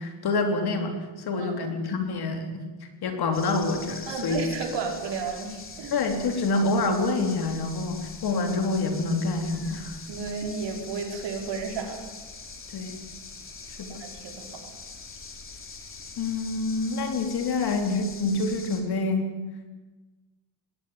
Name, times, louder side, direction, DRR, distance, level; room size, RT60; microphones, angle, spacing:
voice 1, 0.0-2.6 3.0-4.4 5.9-10.0 12.7-13.0 13.8-14.0 16.2-19.3, left 3 dB, 55° left, 5 dB, 3.9 m, -27 dB
voice 2, 1.4-1.7 4.1-6.0 10.1-12.1 13.9-14.7, right 5 dB, 65° right, 2 dB, 5.2 m, -33 dB
sound 1, 3.3-18.8, left 4 dB, 25° left, 3.0 m, -43 dB
20.0 x 18.0 x 9.1 m, 1.2 s
cardioid pair, 130°, 47 cm